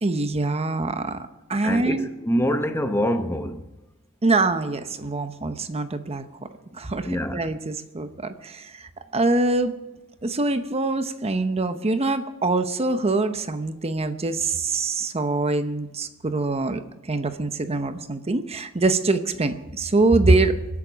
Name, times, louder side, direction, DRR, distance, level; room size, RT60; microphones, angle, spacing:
voice 1, 0.0-2.1 4.2-6.2 6.7-9.7 10.2-16.8 17.1-20.6, right 2 dB, 30° right, 0.8 m, -24 dB
voice 2, 1.6-3.6 7.0-7.4, equal, 10° left, 0.8 m, -25 dB
24.5 x 8.6 x 6.2 m
head